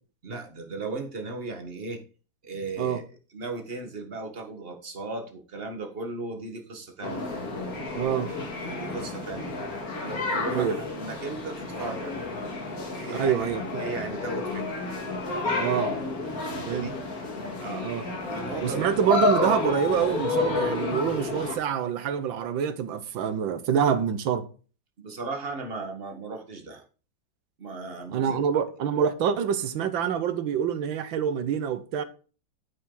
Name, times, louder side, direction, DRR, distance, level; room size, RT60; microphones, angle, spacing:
voice 1, 0.2-2.0 2.4-3.0 3.3-7.3 8.6-9.5 10.0-12.1 12.9-13.4 13.8-14.8 16.4-16.9 17.6-18.9 25.0-26.8 27.6-28.4, right 3 dB, 30° right, 1.6 m, -36 dB
sound 1, 7.0-21.6, left 3 dB, 45° left, 2.5 m, -30 dB
voice 2, 7.9-8.3 10.5-10.8 13.1-13.8 15.6-16.0 16.7-16.9 17.8-18.0 18.6-24.5 28.1-32.0, right 8 dB, 75° right, 1.7 m, -26 dB
8.9 x 8.6 x 3.9 m
omnidirectional pair, 2.1 m